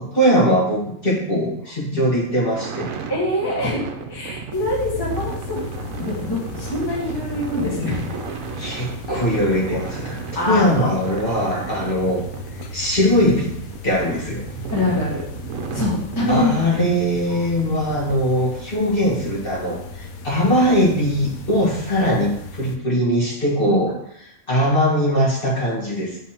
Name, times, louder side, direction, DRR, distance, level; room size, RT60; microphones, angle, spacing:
voice 1, 0.0-2.9 8.6-12.2 12.7-13.5 13.8-14.4 16.3-23.9 24.2-26.2, equal, 40° left, -6 dB, 1.7 m, -21 dB
sound 1, 2.5-18.1, right 6 dB, 70° right, 1.0 m, -34 dB
voice 2, 3.1-5.6 6.0-8.2 10.3-10.9 11.5-11.7 14.7-15.2 15.7-16.8 17.3-17.5 20.4-20.5, left 1 dB, 15° left, -6 dB, 1.3 m, -24 dB
sound 2, 4.5-22.8, left 4 dB, 80° left, 1.0 m, -36 dB
8.3 x 4.0 x 2.9 m, 0.75 s
omnidirectional pair, 1.5 m